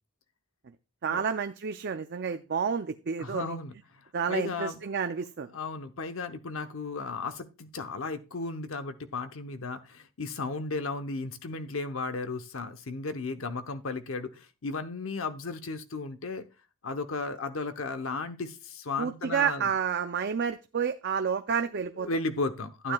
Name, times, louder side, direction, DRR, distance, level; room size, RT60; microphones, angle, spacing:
voice 1, 1.0-3.6 4.1-5.5 19.0-22.1 22.8-22.9, right 6 dB, 50° right, 8 dB, 0.4 m, -30 dB
voice 2, 3.2-4.8 5.5-16.5 16.8-19.7 22.0-22.9, left 3 dB, 65° left, 8 dB, 0.8 m, -35 dB
12.0 x 9.3 x 2.3 m, 0.32 s
head